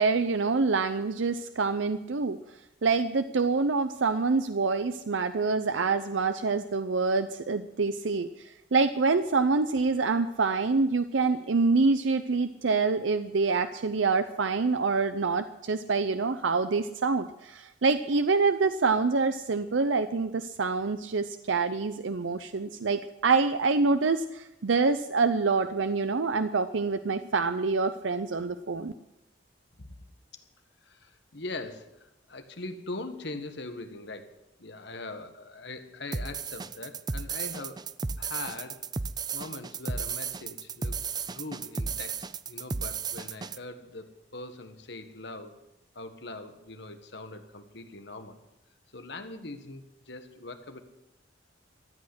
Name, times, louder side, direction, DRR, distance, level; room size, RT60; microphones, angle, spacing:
voice 1, 0.0-2.4 2.8-28.9, right 4 dB, 85° right, 10 dB, 0.6 m, -26 dB
voice 2, 30.8-34.3 34.6-37.8 38.2-38.8 39.3-41.0 41.3-45.5 45.9-48.4 48.9-50.8, left 2 dB, 65° left, 8 dB, 1.6 m, -41 dB
sound 1, 36.1-43.6, right 5 dB, 20° right, 0.4 m, -34 dB
14.0 x 8.7 x 9.7 m, 0.88 s
head